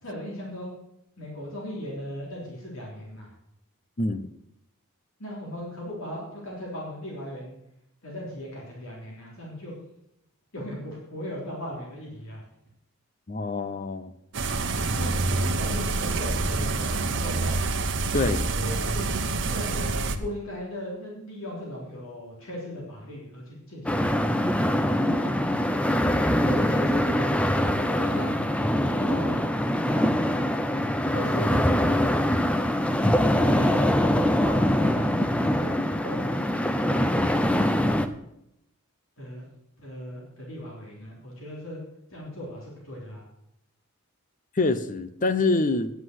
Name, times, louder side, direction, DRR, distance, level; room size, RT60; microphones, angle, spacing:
voice 1, 0.0-0.7 1.2-3.3 5.2-7.5 8.0-9.8 10.5-12.4 14.9-15.1 15.4-17.7 18.2-19.1 19.4-24.4 25.0-25.9 26.5-27.3 27.6-28.4 28.8-29.4 29.9-30.3 30.8-31.7 33.3-35.7 36.0-36.4 36.9-38.0 39.2-39.5 39.8-41.8 42.1-43.2, left 1 dB, 65° left, -3 dB, 3.5 m, -38 dB
voice 2, 13.3-14.1 18.1-18.4 44.6-45.9, left 3 dB, 35° left, 10 dB, 0.8 m, -25 dB
sound 1, 14.3-20.2, right 3 dB, 55° right, 1.0 m, -27 dB
sound 2, 23.9-38.1, left 1 dB, 5° left, 0.6 m, -23 dB
9.7 x 8.0 x 8.0 m, 0.80 s
head